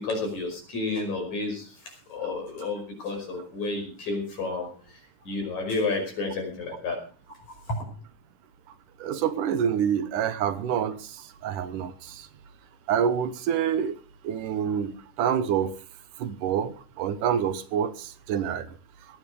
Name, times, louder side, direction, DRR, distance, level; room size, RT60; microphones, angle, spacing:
voice 1, 0.0-4.7 5.2-7.0 7.7-7.8, left 3 dB, 65° left, 3 dB, 6.6 m, -31 dB
voice 2, 9.0-12.3 12.9-13.9 14.2-15.8 16.2-18.7, right 8 dB, 80° right, 12 dB, 2.7 m, -27 dB
21.5 x 9.2 x 5.0 m, 0.38 s
omnidirectional pair, 3.6 m